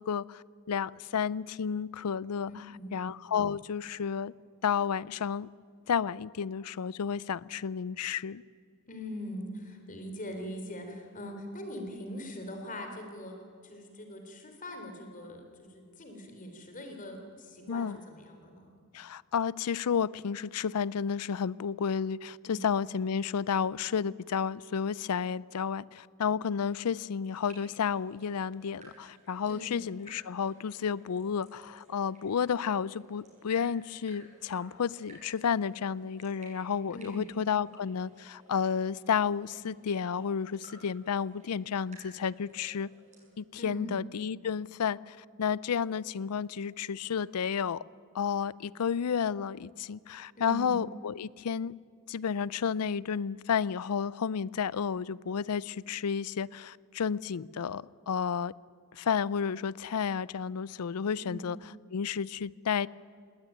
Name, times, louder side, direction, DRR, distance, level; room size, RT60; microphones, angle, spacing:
voice 1, 0.0-2.5 2.9-4.3 4.6-5.5 5.9-8.4 17.7-18.0 18.9-42.9 43.4-47.8 48.1-51.7 52.1-58.5 58.9-61.6 61.9-62.9, left 7 dB, 90° left, 22 dB, 0.5 m, -31 dB
voice 2, 2.5-2.9 8.9-13.4 13.6-18.7 22.5-22.6 29.5-29.8 36.9-37.2 43.6-44.0 50.4-50.8 61.2-61.4, left 1 dB, 35° left, 4 dB, 3.7 m, -42 dB
sound 1, 27.2-43.3, right 2 dB, 30° right, 7.8 m, -58 dB
19.5 x 18.5 x 9.2 m, 2.3 s
head